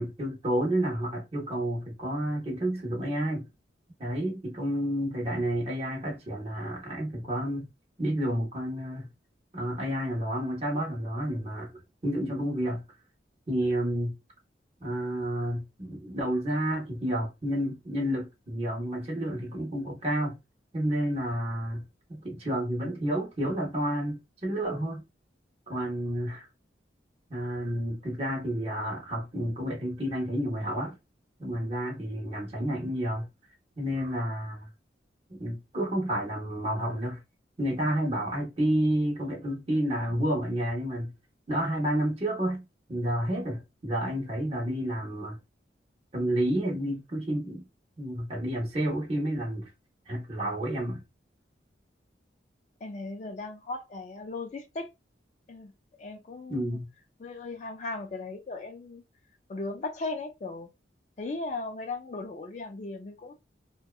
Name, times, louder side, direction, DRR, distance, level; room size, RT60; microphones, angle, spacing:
voice 1, 0.0-3.5 4.0-7.7 8.0-9.1 9.5-11.7 12.0-12.8 13.5-14.2 14.8-20.4 20.7-21.8 22.1-25.0 25.7-26.5 27.3-31.0 31.4-33.3 33.8-34.6 35.3-37.2 37.6-41.1 41.5-45.4 46.1-47.6 48.0-49.7 50.1-51.0 56.5-56.9, right 1 dB, 35° right, 0.8 m, -30 dB
voice 2, 52.8-54.9 55.5-55.7 56.0-56.8 57.2-59.0 59.5-60.7 61.2-63.3, left 3 dB, 40° left, 0.3 m, -37 dB
2.7 x 2.2 x 2.2 m
head